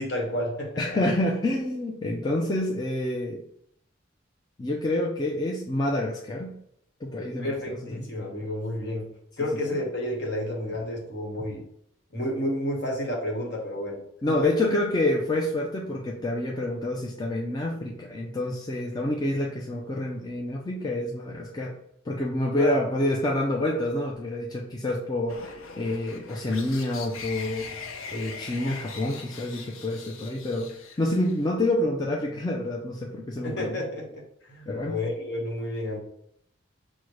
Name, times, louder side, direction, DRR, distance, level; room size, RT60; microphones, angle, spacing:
voice 1, 0.0-1.0 7.4-9.1 9.4-11.6 12.1-14.0 14.4-14.5 22.6-22.8 33.4-36.0, left 1 dB, 55° left, -1 dB, 1.2 m, -30 dB
voice 2, 0.8-3.4 4.6-6.5 7.0-8.0 14.2-21.8 22.1-30.7 31.0-33.8 34.7-35.0, left 1 dB, 20° left, -2 dB, 0.4 m, -28 dB
sound 1, 25.3-31.5, left 5 dB, 90° left, 0.5 m, -41 dB
6.2 x 2.1 x 3.0 m, 0.71 s
head